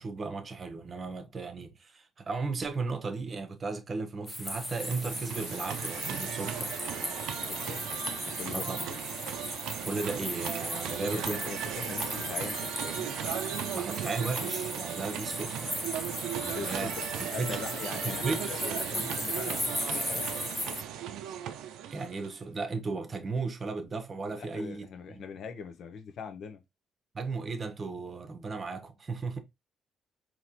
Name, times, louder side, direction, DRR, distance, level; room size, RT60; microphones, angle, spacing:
voice 1, 0.0-6.8 8.5-8.9 9.8-11.4 13.7-15.9 16.5-16.9 17.2-17.6 18.0-18.5 21.9-25.2 27.1-29.4, right 4 dB, 40° right, 0.8 m, -35 dB
sound 1, 4.3-20.8, left 1 dB, 10° left, 0.7 m, -37 dB
sound 2, 4.4-22.4, right 10 dB, 90° right, 0.4 m, -37 dB
voice 2, 7.4-7.8 8.2-9.0 10.9-13.2 16.3-16.9 17.3-20.3 24.3-26.6, left 6 dB, 65° left, 0.7 m, -42 dB
4.2 x 2.9 x 2.7 m
cardioid pair, 90°, 0 cm